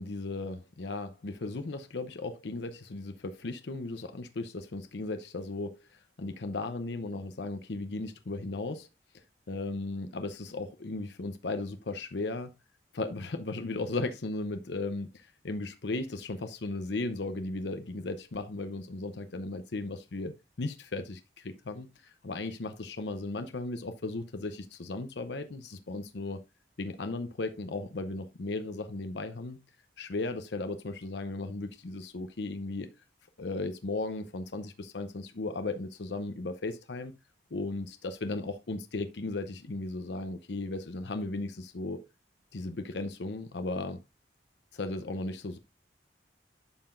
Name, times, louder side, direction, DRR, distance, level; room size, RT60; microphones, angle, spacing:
voice 1, 0.0-8.9 9.5-12.5 12.9-26.4 26.8-29.6 30.0-32.9 33.4-37.1 37.5-42.0 42.5-44.0 44.7-45.6, left 2 dB, 70° left, 0.7 m, -36 dB
11.0 x 5.7 x 2.5 m
head